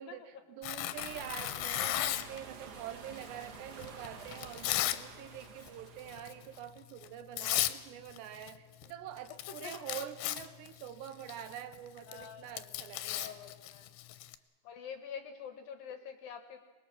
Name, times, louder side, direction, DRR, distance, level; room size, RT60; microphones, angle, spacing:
voice 1, 0.0-13.4, right 11 dB, 75° right, 11 dB, 3.0 m, -46 dB
Tearing, 0.6-2.4 3.2-5.0 5.4-5.7 6.1-6.3 7.0-7.1 7.4-7.8 8.1-8.9 9.2-14.4, left 14 dB, 85° left, 3.2 m, -35 dB
sound 1, 0.9-6.6, right 5 dB, 55° right, 3.4 m, -50 dB
voice 2, 9.6-10.0 12.1-14.2 14.6-16.6, left 7 dB, 70° left, 8 dB, 2.4 m, -47 dB
24.5 x 21.0 x 7.4 m, 1.3 s
omnidirectional pair, 5.1 m